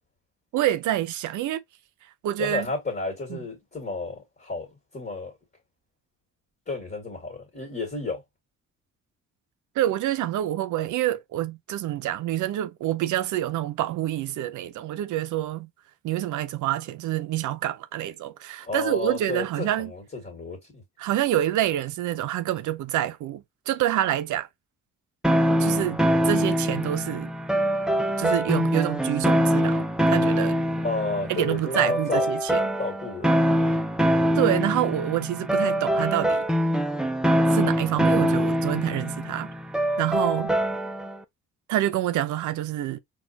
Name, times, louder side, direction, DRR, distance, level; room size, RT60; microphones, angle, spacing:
voice 1, 0.5-1.6 2.2-2.7 3.3-3.4 9.8-15.7 16.0-19.9 21.0-24.5 25.6-27.3 28.2-30.6 31.3-32.7 34.3-36.5 37.5-39.5 40.0-40.6 41.7-43.0, right 13 dB, 75° right, 0.6 m, -27 dB
voice 2, 2.4-5.3 6.7-8.2 18.6-20.8 30.8-32.3 32.8-33.4, left 3 dB, 30° left, 1.8 m, -32 dB
sound 1, 25.2-41.2, equal, ahead, 0.5 m, -24 dB
4.1 x 2.4 x 2.7 m
cardioid pair, 90°, 30 cm